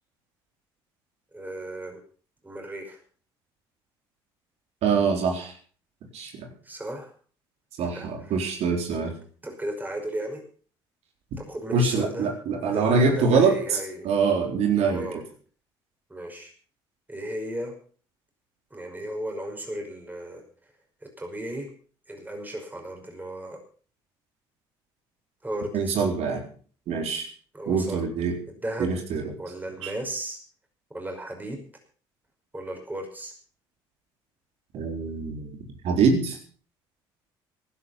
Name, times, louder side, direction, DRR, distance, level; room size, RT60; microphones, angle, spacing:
voice 1, 1.3-2.0 2.4-3.0 6.6-7.1 7.8-8.5 9.4-10.4 11.4-12.3 12.7-14.1 14.9-15.2 16.1-16.5 17.1-17.8 18.7-20.7 21.2-21.7 22.1-23.6 25.4-26.0 27.5-28.1 28.5-28.9 29.4-30.4 30.9-31.6 32.5-33.3, right 1 dB, 15° right, 2 dB, 5.6 m, -35 dB
voice 2, 4.8-5.5 6.1-6.5 7.8-9.1 11.7-13.5 14.0-15.1 25.7-26.4 26.9-27.3 27.7-28.3 28.8-29.2 29.8-29.9 34.7-35.5 35.8-36.4, right 5 dB, 65° right, 3 dB, 4.1 m, -24 dB
15.0 x 12.0 x 5.8 m, 0.43 s
hypercardioid pair, 60°, 12 cm